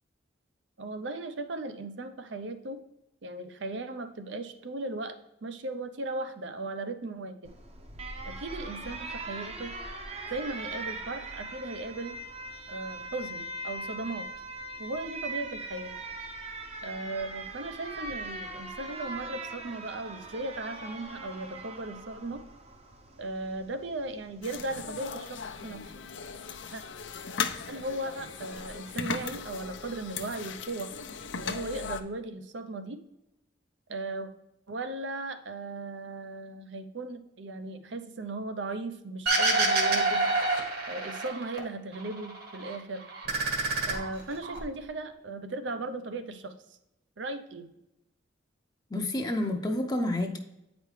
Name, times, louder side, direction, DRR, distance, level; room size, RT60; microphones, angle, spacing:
voice 1, 0.8-2.8 3.2-7.5 8.3-9.7 10.3-12.2 12.7-14.3 14.8-15.9 16.8-22.4 23.2-25.9 26.7-26.8 27.7-30.9 31.3-33.0 33.9-34.3 34.7-40.2 40.9-43.0 43.8-46.5 47.2-47.7, right 2 dB, 80° right, 9 dB, 0.7 m, -37 dB
Alarm, 7.4-24.7, right 2 dB, 35° right, 0.7 m, -41 dB
sound 1, 24.4-32.0, left 6 dB, 85° left, 0.6 m, -38 dB
sound 2, 39.3-41.6 41.9-42.8 43.1-44.6, right 3 dB, 60° right, 1.5 m, -27 dB
voice 2, 48.9-50.4, left 1 dB, 20° left, 3 dB, 0.6 m, -29 dB
8.9 x 5.1 x 3.2 m, 0.89 s
head